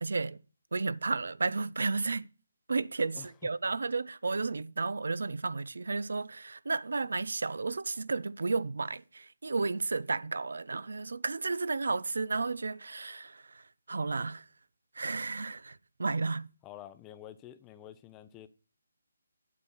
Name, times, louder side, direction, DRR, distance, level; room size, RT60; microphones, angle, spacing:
voice 1, 0.0-0.4 0.7-2.3 2.7-14.4 14.9-16.5, right 3 dB, 75° right, 0.6 m, -33 dB
voice 2, 16.6-18.5, left 12 dB, 15° left, 0.6 m, -48 dB
8.5 x 5.3 x 6.4 m
hypercardioid pair, 165°, 0 cm